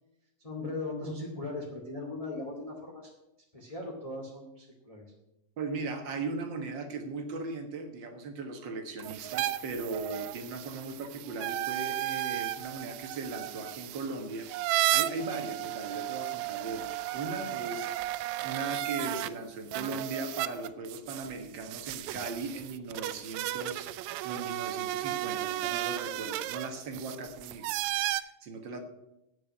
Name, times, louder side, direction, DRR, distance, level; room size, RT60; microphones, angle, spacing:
voice 1, 0.4-3.1 3.5-5.1, left 2 dB, 15° left, -2 dB, 1.7 m, -38 dB
voice 2, 5.6-14.5 14.9-18.1 18.4-23.9 24.2-27.7 28.0-28.8, right 3 dB, 50° right, 6 dB, 1.5 m, -38 dB
sound 1, 9.0-19.3 19.7-28.2, right 15 dB, 80° right, 1.7 m, -34 dB
8.9 x 7.7 x 9.0 m, 0.89 s
omnidirectional pair, 3.5 m